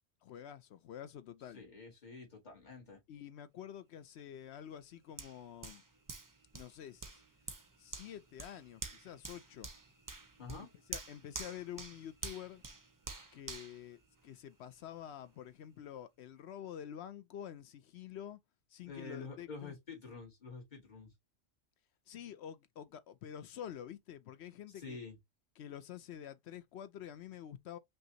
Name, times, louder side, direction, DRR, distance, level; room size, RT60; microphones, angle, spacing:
voice 1, 0.2-1.6 3.1-5.8 6.5-7.2 7.8-9.7 10.6-12.6 13.3-18.4 18.7-19.7 22.1-25.0 25.6-27.8, left 10 dB, 65° left, 0.7 m, -48 dB
voice 2, 1.5-3.0 10.4-10.7 18.9-21.1 24.7-25.2, left 4 dB, 35° left, 2.1 m, -48 dB
Hands, 5.2-14.7 15.2-15.3, right 3 dB, 25° right, 0.4 m, -48 dB
5.4 x 2.7 x 2.8 m
omnidirectional pair, 1.3 m